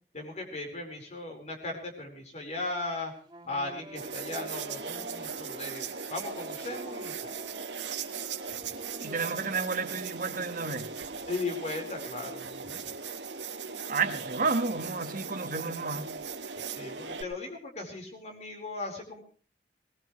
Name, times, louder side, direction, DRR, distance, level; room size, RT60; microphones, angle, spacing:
voice 1, 0.1-3.1 3.4-7.4 11.3-12.8 16.7-19.2, left 2 dB, 40° left, 4.7 m, -37 dB
Wind instrument woodwind instrument, 3.2-11.1, right 1 dB, 25° right, 3.4 m, -48 dB
sound 1, 4.0-17.2, right 5 dB, 85° right, 1.6 m, -38 dB
voice 2, 9.0-10.9 13.9-16.1, right 4 dB, 50° right, 1.6 m, -31 dB
20.5 x 20.0 x 3.3 m
head